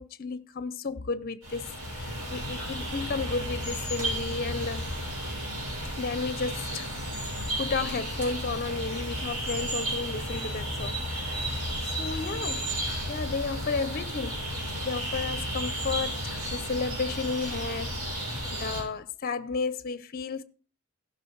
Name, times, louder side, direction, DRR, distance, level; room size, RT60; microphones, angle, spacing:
voice 1, 0.0-4.8 5.9-6.9 7.6-11.0 11.4-11.5 12.0-12.7 13.1-20.4, left 4 dB, 40° left, 0.5 m, -33 dB
sound 1, 1.4-18.8, equal, 75° right, 5.5 m, -33 dB
15.5 x 6.0 x 4.6 m
head